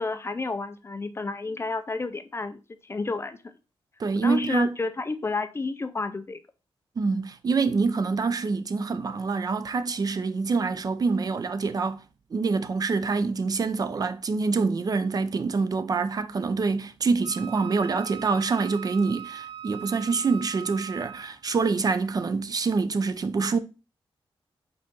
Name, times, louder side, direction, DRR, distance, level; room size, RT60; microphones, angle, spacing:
voice 1, 0.0-3.5 4.2-6.4, left 3 dB, 25° left, 0.5 m, -31 dB
voice 2, 4.0-4.8 7.0-12.0 12.3-23.6, right 4 dB, 40° right, 0.6 m, -26 dB
Wind instrument woodwind instrument, 17.2-21.4, right 9 dB, 90° right, 0.7 m, -40 dB
5.4 x 4.2 x 5.2 m
wide cardioid pair, 150°, 10 cm